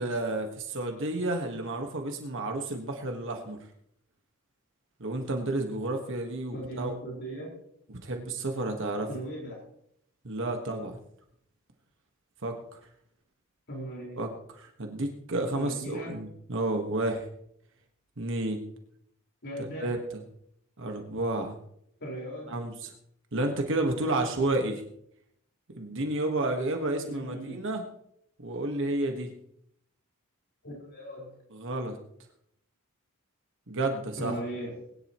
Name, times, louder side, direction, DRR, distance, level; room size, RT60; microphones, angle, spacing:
voice 1, 0.0-3.6 5.0-6.9 7.9-9.1 10.2-11.0 12.4-12.6 14.2-14.3 14.6-17.3 18.2-18.6 19.6-20.0 20.8-21.6 22.5-22.9 23.3-24.8 25.8-27.8 28.4-29.3 31.5-32.0 33.7-34.3, right 2 dB, 60° right, 4 dB, 1.6 m, -31 dB
voice 2, 6.5-7.5 9.0-9.6 13.7-14.2 15.5-16.2 19.4-19.9 22.0-22.5 27.0-27.6 30.6-31.4 34.2-34.8, right 1 dB, 55° left, -3 dB, 4.9 m, -38 dB
21.5 x 10.5 x 3.1 m, 0.72 s
head